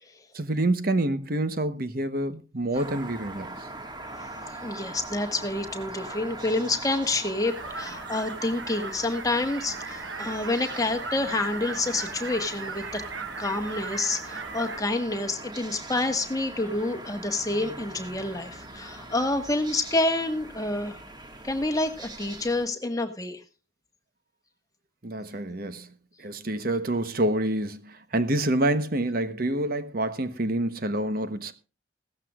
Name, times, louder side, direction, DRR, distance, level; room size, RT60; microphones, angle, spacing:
voice 1, 0.3-3.7 25.0-25.9 26.2-31.5, right 1 dB, 50° right, 1.1 m, -27 dB
sound 1, 2.7-22.7, right 2 dB, 20° right, 1.7 m, -42 dB
voice 2, 4.6-13.0 13.4-21.0 21.4-23.4, left 2 dB, 20° left, 1.6 m, -28 dB
sound 2, 7.5-14.8, right 4 dB, 80° right, 1.4 m, -37 dB
17.0 x 14.0 x 2.4 m
head